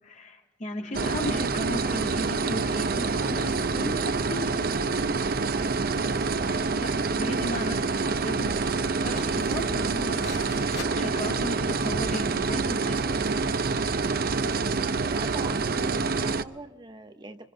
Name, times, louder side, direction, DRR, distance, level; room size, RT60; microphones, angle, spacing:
voice 1, 0.0-5.7 6.7-8.5 8.8-13.2, equal, 45° left, 1 dB, 3.0 m, -36 dB
sound 1, 0.9-16.4, right 4 dB, 55° right, 0.6 m, -27 dB
sound 2, 4.9-10.9, left 5 dB, 65° left, 4.0 m, -48 dB
voice 2, 15.1-17.5, right 2 dB, 25° right, 8 dB, 0.9 m, -41 dB
26.0 x 25.5 x 3.9 m, 1.1 s
head